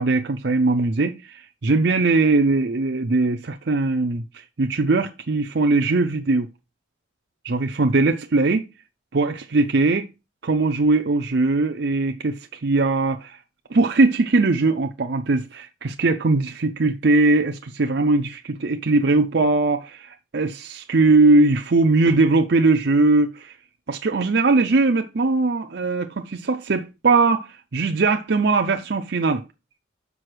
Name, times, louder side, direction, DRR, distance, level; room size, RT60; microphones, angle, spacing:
voice 1, 0.0-4.2 4.6-6.5 7.4-8.6 9.1-10.1 10.4-13.4 13.7-23.5 23.9-29.4, right 3 dB, 55° right, 0.6 m, -20 dB
6.1 x 5.3 x 4.9 m
head